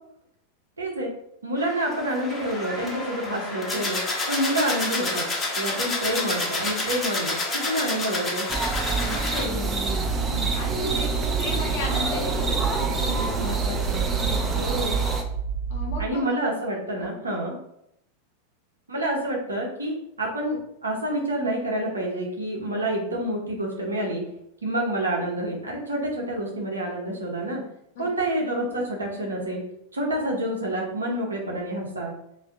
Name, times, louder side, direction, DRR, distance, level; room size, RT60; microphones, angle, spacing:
voice 1, 0.8-1.1 1.4-4.0 4.3-5.3 5.6-8.5 14.6-15.0 16.0-17.5 18.9-24.2 24.6-27.6 28.0-29.6 29.9-32.1, right 1 dB, 75° right, -1 dB, 0.7 m, -28 dB
sound 1, 1.6-9.4, left 2 dB, 20° left, 0.7 m, -29 dB
sound 2, 8.5-15.2, right 3 dB, 20° right, 0.4 m, -27 dB
voice 2, 9.0-14.6 15.7-16.2 28.0-28.1, left 3 dB, 55° left, 0 dB, 0.8 m, -35 dB
sound 3, 10.0-16.1, right 6 dB, 55° right, 1.0 m, -29 dB
2.6 x 2.2 x 3.4 m, 0.77 s
figure-of-eight pair, 90°, 0 cm